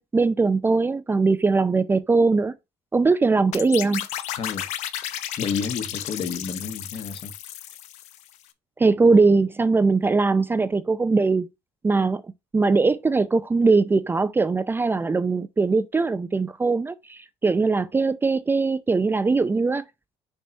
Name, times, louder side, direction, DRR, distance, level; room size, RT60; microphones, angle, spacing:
voice 1, 0.0-2.5 2.9-4.1 8.8-11.5 11.8-12.2 12.5-19.8, right 3 dB, 15° right, 0.5 m, -21 dB
sound 1, 3.5-8.3, left 12 dB, 70° left, 0.8 m, -33 dB
voice 2, 4.3-4.7 5.4-7.3, left 5 dB, 45° left, 1.4 m, -30 dB
6.9 x 3.1 x 5.3 m
supercardioid pair, 100°, 12 cm